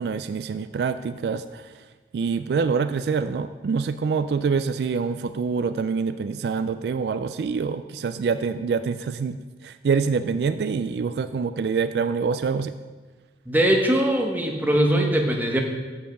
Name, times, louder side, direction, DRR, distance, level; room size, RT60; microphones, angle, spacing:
voice 1, 0.0-1.8 2.1-9.4 9.6-12.7, right 5 dB, 65° right, 11 dB, 0.3 m, -26 dB
voice 2, 13.5-15.6, right 1 dB, 10° right, 1 dB, 1.0 m, -21 dB
7.2 x 6.9 x 6.4 m, 1.4 s
head